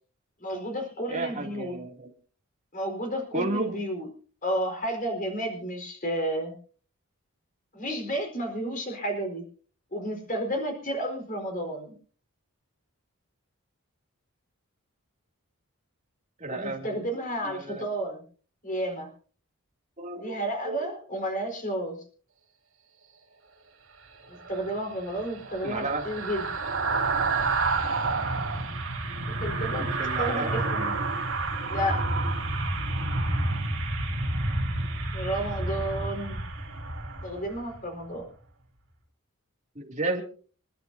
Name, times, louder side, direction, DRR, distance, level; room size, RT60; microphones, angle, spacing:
voice 1, 0.4-1.8 2.7-4.1 4.4-6.5 7.7-9.4 9.9-12.0 16.5-18.2 18.6-19.1 20.2-22.0 24.3-26.5 29.3-29.9 30.2-30.9 31.7-32.0 35.1-36.4 37.2-38.3, right 1 dB, 35° left, 2 dB, 4.5 m, -31 dB
voice 2, 1.1-2.1 3.3-3.8 16.4-17.0 17.4-17.8 20.0-20.9 25.6-26.0 29.7-30.6 39.7-40.2, right 2 dB, 30° right, 2 dB, 2.7 m, -32 dB
sound 1, 24.4-37.8 38.1-38.3, right 3 dB, 60° right, 4.8 m, -29 dB
27.5 x 11.5 x 2.7 m, 0.42 s
head